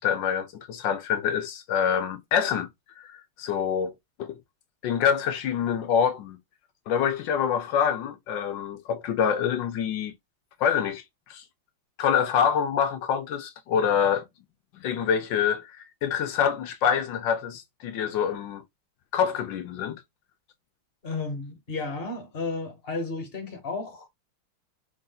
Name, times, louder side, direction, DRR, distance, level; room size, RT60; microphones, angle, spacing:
voice 1, 0.0-2.7 3.0-3.9 4.2-4.4 4.8-6.4 6.9-10.1 10.6-11.0 11.3-11.4 12.0-14.2 14.7-18.6 19.1-20.0, left 8 dB, 75° left, 1.2 m, -26 dB
voice 2, 21.0-24.1, left 3 dB, 30° left, 1.4 m, -33 dB
4.3 x 2.5 x 3.9 m
omnidirectional pair, 2.3 m